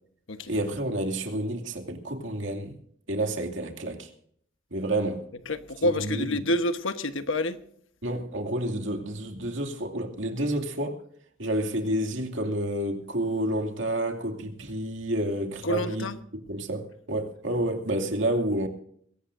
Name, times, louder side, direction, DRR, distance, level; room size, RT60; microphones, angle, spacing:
voice 1, 0.5-2.8 3.1-4.1 4.7-5.3 5.8-6.4 8.0-11.0 11.4-16.1 16.5-18.7, right 1 dB, 65° right, 2.5 m, -29 dB
voice 2, 5.5-7.6 15.6-16.1, left 1 dB, 70° left, 1.2 m, -28 dB
22.0 x 17.5 x 2.6 m
head